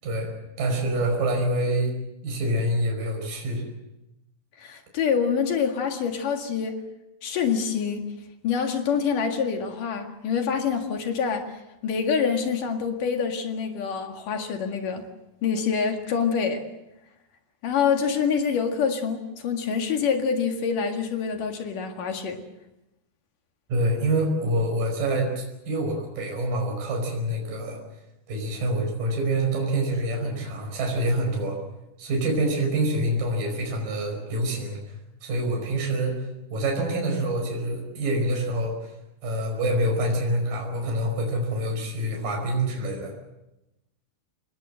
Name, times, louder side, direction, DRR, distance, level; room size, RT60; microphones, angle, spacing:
voice 1, 0.6-2.0 2.2-3.6 23.7-27.8 28.3-31.6 32.0-34.8 35.2-36.2 36.5-38.9 39.2-43.1, right 1 dB, 55° right, 6.8 m, -26 dB
voice 2, 4.6-6.8 7.2-8.1 8.4-15.1 15.4-16.7 17.6-22.4, left 6 dB, 60° left, 3.3 m, -26 dB
25.5 x 20.5 x 7.7 m
omnidirectional pair, 4.6 m